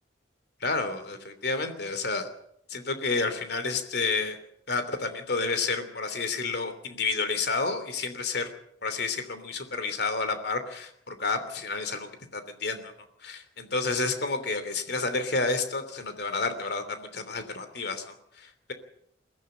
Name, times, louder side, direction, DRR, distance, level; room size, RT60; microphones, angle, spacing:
voice 1, 0.6-2.3 2.7-4.4 4.7-8.5 8.8-12.9 13.2-18.7, left 3 dB, 65° left, 9 dB, 3.1 m, -30 dB
22.0 x 15.0 x 8.9 m, 0.74 s
head